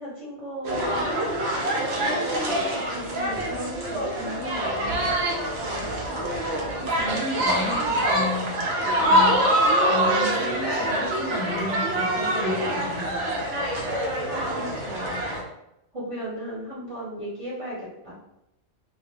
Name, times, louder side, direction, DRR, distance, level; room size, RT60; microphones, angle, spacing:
voice 1, 0.0-1.4 1.8-5.1 14.2-15.3 15.9-18.1, equal, 30° right, -9 dB, 0.9 m, -36 dB
sound 1, 0.6-15.4, right 1 dB, 75° right, 0.9 m, -25 dB
voice 2, 6.8-8.6 8.8-9.4 9.8-13.2, left 2 dB, 70° left, -2 dB, 0.8 m, -33 dB
2.3 x 2.2 x 2.9 m, 0.85 s
omnidirectional pair, 1.3 m